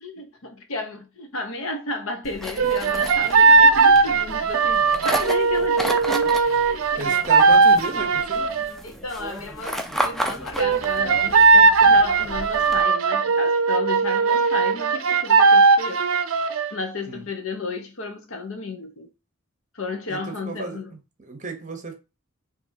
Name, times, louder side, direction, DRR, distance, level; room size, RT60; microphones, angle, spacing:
voice 1, 0.0-7.3 8.8-16.0 16.7-19.1 19.7-20.9, left 3 dB, 65° left, 0.8 m, -33 dB
sound 1, 2.2-12.8, equal, ahead, 0.4 m, -33 dB
sound 2, 2.6-8.8 10.6-16.8, right 4 dB, 65° right, 0.5 m, -18 dB
voice 2, 7.0-8.5 17.1-17.3 20.1-21.9, right 3 dB, 35° right, 0.8 m, -34 dB
5.1 x 2.6 x 2.7 m
head